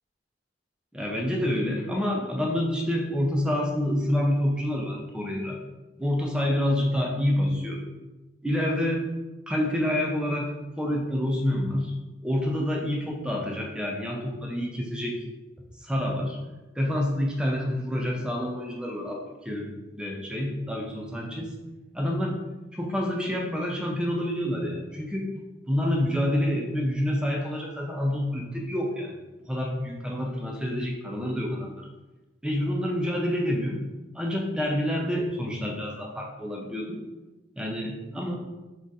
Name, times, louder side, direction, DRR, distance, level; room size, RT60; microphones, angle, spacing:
voice 1, 0.9-5.6 6.0-7.8 8.4-9.1 9.5-11.9 12.2-15.2 15.8-16.4 16.8-21.5 21.9-22.4 22.7-25.3 25.7-29.2 29.5-31.9 32.4-33.8 34.1-37.0 37.6-38.3, left 1 dB, 5° right, 0 dB, 0.3 m, -28 dB
2.4 x 2.3 x 3.9 m, 1.1 s
head